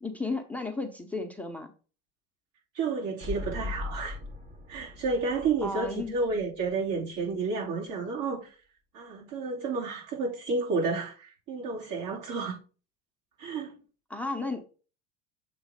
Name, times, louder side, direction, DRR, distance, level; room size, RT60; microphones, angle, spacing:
voice 1, 0.0-1.7 5.6-6.1 14.1-14.7, left 3 dB, 5° left, 0.6 m, -33 dB
voice 2, 2.7-4.2 4.7-8.6 8.9-12.6 13.4-13.8, right 4 dB, 75° right, 3.3 m, -31 dB
sound 1, 3.2-7.0 7.2-7.3, left 3 dB, 20° right, 0.9 m, -40 dB
7.2 x 3.1 x 5.0 m
supercardioid pair, 125°, 33 cm